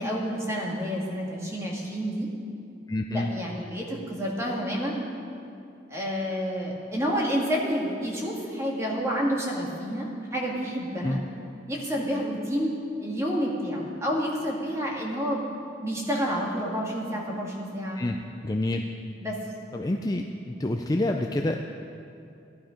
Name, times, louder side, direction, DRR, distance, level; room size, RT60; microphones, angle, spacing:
voice 1, 0.0-2.3 3.1-5.0 5.9-11.2 11.7-12.7 13.0-15.4 15.8-18.0 19.2-19.4, equal, 15° right, -3 dB, 1.9 m, -29 dB
voice 2, 2.9-3.3 11.0-11.2 17.9-18.2 18.4-18.8 19.7-21.6, left 1 dB, 20° left, 3 dB, 0.4 m, -27 dB
14.5 x 11.5 x 5.2 m, 2.7 s
head